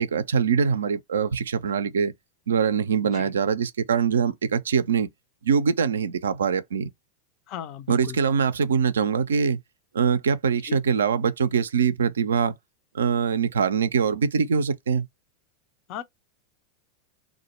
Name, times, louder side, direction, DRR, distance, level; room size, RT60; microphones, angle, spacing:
voice 1, 0.0-2.1 2.5-5.1 5.4-6.9 7.9-9.6 9.9-12.6 12.9-15.1, right 6 dB, 75° right, 0.3 m, -23 dB
voice 2, 7.5-8.2 10.6-10.8 15.9-16.0, left 10 dB, 45° left, 0.5 m, -36 dB
2.1 x 2.0 x 2.9 m
figure-of-eight pair, 90°, 0 cm